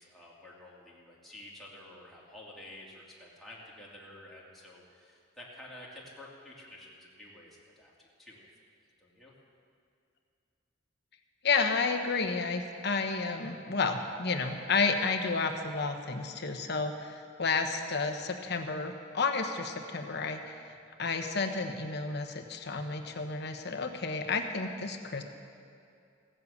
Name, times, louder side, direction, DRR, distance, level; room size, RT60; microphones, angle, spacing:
voice 1, 0.0-8.5 9.0-9.3, left 1 dB, ahead, -6 dB, 2.6 m, -50 dB
voice 2, 11.4-20.6 21.0-25.2, left 4 dB, 55° left, 5 dB, 1.1 m, -31 dB
16.0 x 7.7 x 8.3 m, 2.5 s
head